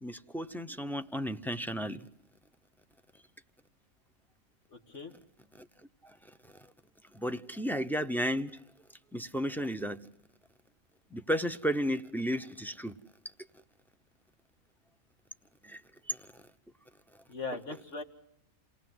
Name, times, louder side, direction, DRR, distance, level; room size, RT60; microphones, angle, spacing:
voice 1, 0.0-2.0 7.2-8.5 9.1-10.0 11.1-12.9 15.7-15.8, equal, ahead, 6 dB, 0.7 m, -33 dB
voice 2, 4.7-5.1 17.3-18.0, left 3 dB, 60° left, 5 dB, 2.4 m, -39 dB
28.5 x 18.5 x 8.0 m, 0.78 s
omnidirectional pair, 1.4 m